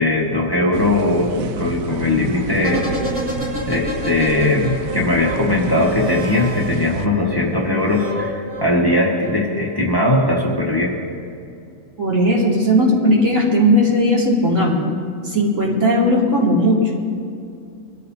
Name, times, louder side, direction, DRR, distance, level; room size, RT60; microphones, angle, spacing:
voice 1, 0.0-2.9 3.7-11.0, left 2 dB, 15° left, -3 dB, 1.8 m, -19 dB
sound 1, 0.7-7.1, right 6 dB, 85° right, 1.1 m, -31 dB
sound 2, 2.6-7.0 7.8-9.7 10.0-10.1, left 1 dB, 10° right, 2.9 m, -29 dB
voice 2, 12.0-14.7 15.2-16.8, equal, 70° right, -4 dB, 3.0 m, -16 dB
23.0 x 14.0 x 2.8 m, 2.5 s
omnidirectional pair, 1.4 m